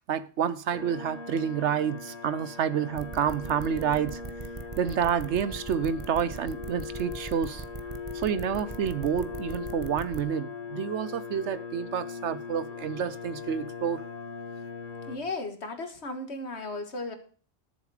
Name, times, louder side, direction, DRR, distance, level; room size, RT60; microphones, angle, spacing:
voice 1, 0.1-4.2 4.8-7.6 8.1-14.0, right 8 dB, 70° right, 1.0 m, -29 dB
sound 1, 0.7-15.2, left 5 dB, 35° left, 1.7 m, -40 dB
sound 2, 3.0-10.2, right 4 dB, 30° right, 0.9 m, -40 dB
voice 2, 15.1-17.1, left 2 dB, 60° left, 1.9 m, -35 dB
12.5 x 7.2 x 4.8 m
omnidirectional pair, 1.3 m